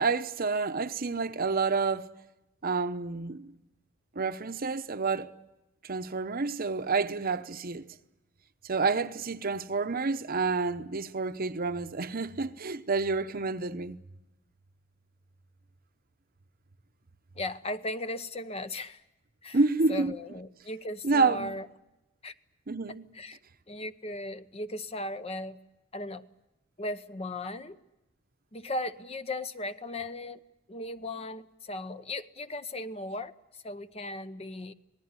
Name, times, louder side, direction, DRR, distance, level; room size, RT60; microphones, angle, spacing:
voice 1, 0.0-2.1 2.6-3.5 4.2-5.3 5.8-7.9 8.6-14.0 19.5-20.1 21.0-21.5 22.7-23.1, right 4 dB, 45° right, 0.9 m, -29 dB
voice 2, 17.4-19.0 19.4-19.6 19.9-21.7 22.2-22.3 23.1-23.4 23.7-25.6 25.9-26.2 26.8-27.8 28.5-30.4 30.7-33.3 33.6-34.7, left 1 dB, 30° left, 0.9 m, -37 dB
26.5 x 19.5 x 9.7 m
head